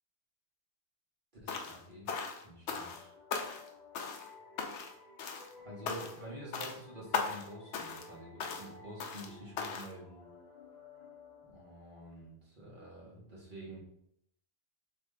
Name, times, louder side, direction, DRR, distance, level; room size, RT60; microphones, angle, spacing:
voice 1, 1.4-3.1 5.6-10.2 11.4-13.8, right 1 dB, 40° right, -5 dB, 1.6 m, -48 dB
sound 1, 1.5-1.8 2.1-3.0 3.3-3.7 3.9-4.3 4.6-4.9 5.2-5.5 5.9-6.2 6.5-6.8 7.1-7.5 7.7-8.1 8.4-8.7 9.0-9.3 9.6-9.9, left 5 dB, 75° left, 0.9 m, -38 dB
sound 2, 2.9-12.3, left 3 dB, 40° left, 0.9 m, -55 dB
3.4 x 3.3 x 3.7 m, 0.73 s
omnidirectional pair, 1.2 m